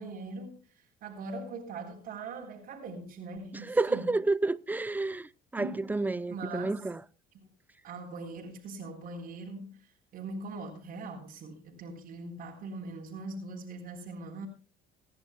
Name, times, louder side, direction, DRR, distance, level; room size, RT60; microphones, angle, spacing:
voice 1, 0.0-4.1 5.6-5.9 6.3-6.8 7.8-9.9 10.1-14.5, right 3 dB, 55° right, 3.7 m, -41 dB
voice 2, 3.6-5.3 5.5-7.0, right 3 dB, 10° right, 0.6 m, -30 dB
26.5 x 10.5 x 2.2 m
cardioid pair, 105°, 17 cm